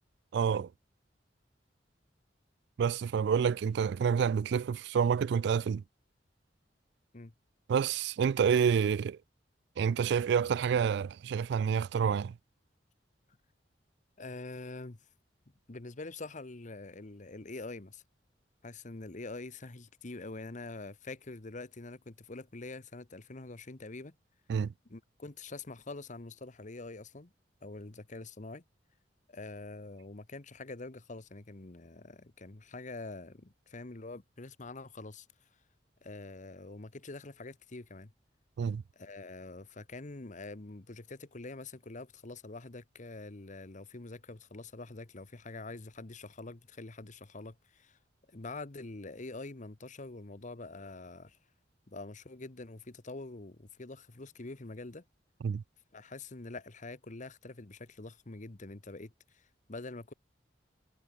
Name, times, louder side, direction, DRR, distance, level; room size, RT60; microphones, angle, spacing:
voice 1, 0.3-0.7 2.8-5.8 7.7-9.2 9.8-12.3 24.5-24.7 38.6-38.8 55.4-55.6, right 7 dB, 65° right, 0.3 m, -28 dB
voice 2, 14.2-15.0 15.7-18.0 18.6-24.1 24.8-27.3 27.6-28.6 29.3-35.3 36.0-38.1 38.9-48.0 48.3-51.4 51.9-55.0 55.9-60.1, left 2 dB, 45° left, 1.2 m, -45 dB
head